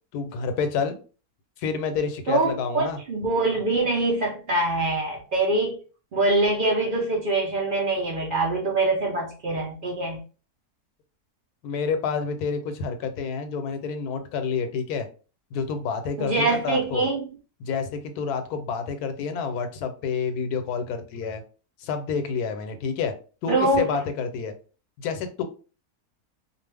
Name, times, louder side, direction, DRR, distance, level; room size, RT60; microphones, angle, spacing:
voice 1, 0.1-1.0 1.6-3.0 11.6-15.1 15.5-17.1 17.6-21.4 21.8-23.1 23.4-24.5 25.0-25.4, left 5 dB, 85° left, 1.1 m, -28 dB
voice 2, 2.3-5.8 6.1-10.2 16.2-17.3 23.5-23.9, right 2 dB, 50° right, 0.6 m, -24 dB
2.5 x 2.3 x 3.3 m
omnidirectional pair, 1.6 m